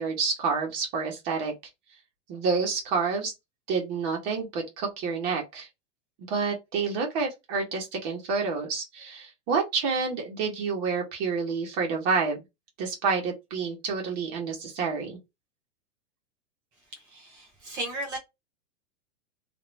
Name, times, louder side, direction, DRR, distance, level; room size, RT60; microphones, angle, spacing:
voice 1, 0.0-1.5 2.3-3.3 3.7-5.7 6.3-12.4 12.8-15.2, right 5 dB, 35° right, 1.3 m, -28 dB
voice 2, 16.9-18.2, right 1 dB, 10° right, 0.3 m, -36 dB
2.8 x 2.6 x 3.2 m
supercardioid pair, 170°, 36 cm